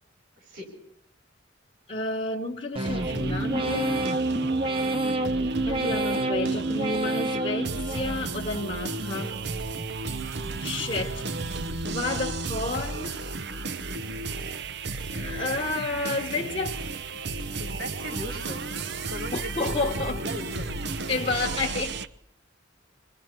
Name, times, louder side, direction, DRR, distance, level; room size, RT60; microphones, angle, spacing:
voice 1, 0.4-0.7 5.0-5.5 17.6-18.6 19.1-20.8, left 1 dB, 80° right, 7.3 m, -38 dB
voice 2, 1.9-4.1 5.7-9.4 10.6-11.2 11.8-13.2 15.1-16.8 19.3-20.2 21.1-22.0, left 2 dB, 30° left, 1.1 m, -30 dB
sound 1, 2.7-8.6 9.0-9.6 10.1-10.7 11.2-11.8 12.3-12.9 13.4-13.9, right 2 dB, 30° right, 1.0 m, -30 dB
sound 2, 2.9-22.1, right 3 dB, 60° right, 0.8 m, -33 dB
27.0 x 21.5 x 4.5 m
head